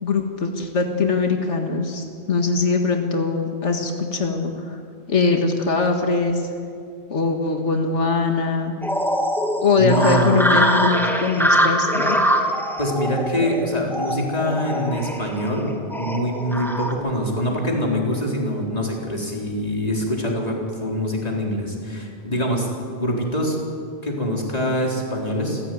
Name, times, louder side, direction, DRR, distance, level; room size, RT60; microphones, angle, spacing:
voice 1, 0.0-4.8 5.1-6.5 7.1-8.7 9.6-12.2, left 4 dB, 90° left, 3 dB, 2.1 m, -22 dB
sound 1, 8.8-16.9, equal, ahead, 2.2 m, -23 dB
voice 2, 9.8-10.4 12.8-23.6 24.0-25.6, equal, 35° left, -1 dB, 4.3 m, -24 dB
27.5 x 16.0 x 9.4 m, 2.4 s
omnidirectional pair, 1.2 m